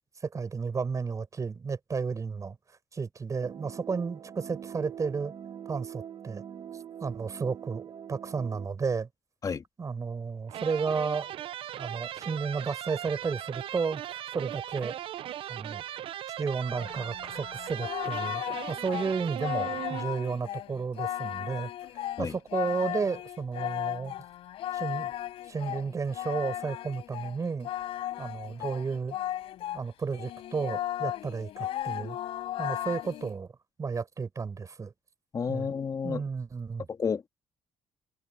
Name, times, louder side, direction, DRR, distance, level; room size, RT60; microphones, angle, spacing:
voice 1, 0.2-2.6 2.9-5.3 5.7-6.4 7.0-9.1 9.8-11.3 11.8-15.0 15.5-15.8 16.4-21.7 22.2-24.1 24.7-25.1 25.5-27.7 28.2-29.2 29.7-32.2 32.6-33.5 33.8-34.9 35.5-35.7 36.0-36.9, right 5 dB, 35° right, 5.9 m, -32 dB
sound 1, 3.4-8.7, right 9 dB, 50° right, 1.6 m, -43 dB
sound 2, 10.5-20.5, right 11 dB, 65° right, 0.8 m, -38 dB
Singing, 16.7-29.8 30.1-33.3, left 13 dB, 75° left, 5.7 m, -36 dB
voice 2, 35.3-36.2 36.9-37.3, left 6 dB, 40° left, 2.6 m, -31 dB
cardioid pair, 100°, 10 cm